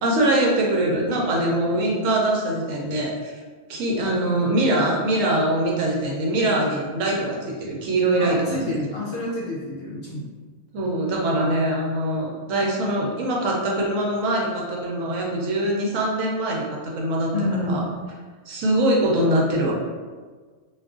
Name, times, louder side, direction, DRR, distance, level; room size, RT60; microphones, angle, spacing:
voice 1, 0.0-3.4 3.7-8.7 10.7-17.8 18.5-19.7, right 1 dB, 75° right, -2 dB, 1.0 m, -23 dB
voice 2, 8.2-10.3 17.3-17.9, left 1 dB, 65° left, -5 dB, 0.6 m, -29 dB
2.6 x 2.3 x 3.6 m, 1.5 s
omnidirectional pair, 1.4 m